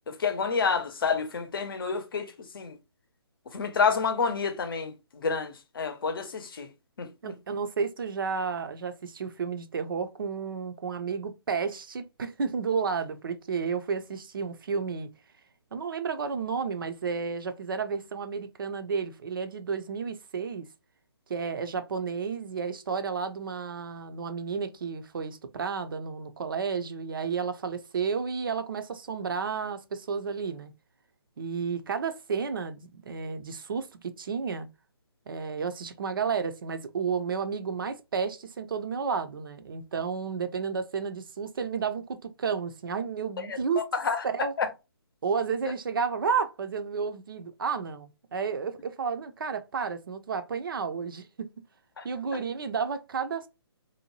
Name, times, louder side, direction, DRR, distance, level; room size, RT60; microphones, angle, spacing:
voice 1, 0.1-2.8 3.5-4.9 5.2-6.7 7.0-7.3 43.5-43.6 44.0-44.2 44.6-44.7 52.0-52.1, left 5 dB, 55° left, 0.7 m, -29 dB
voice 2, 7.2-15.1 15.7-20.7 21.3-30.7 31.4-34.7 35.3-43.8 44.2-44.6 45.2-51.5 52.0-53.5, right 5 dB, 55° right, 0.5 m, -32 dB
2.7 x 2.2 x 2.9 m
figure-of-eight pair, 145°, 14 cm